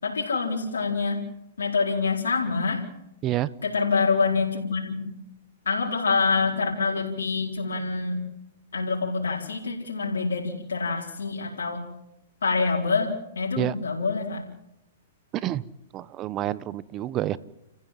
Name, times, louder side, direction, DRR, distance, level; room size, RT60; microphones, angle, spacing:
voice 1, 0.0-1.2 1.6-2.8 3.6-5.2 5.6-8.2 8.7-11.8 12.4-14.4, left 4 dB, 90° left, -3 dB, 4.6 m, -26 dB
voice 2, 15.3-15.6 15.9-17.4, right 14 dB, 30° right, 18 dB, 1.1 m, -28 dB
30.0 x 15.0 x 7.7 m, 0.85 s
hypercardioid pair, 125°, 0 cm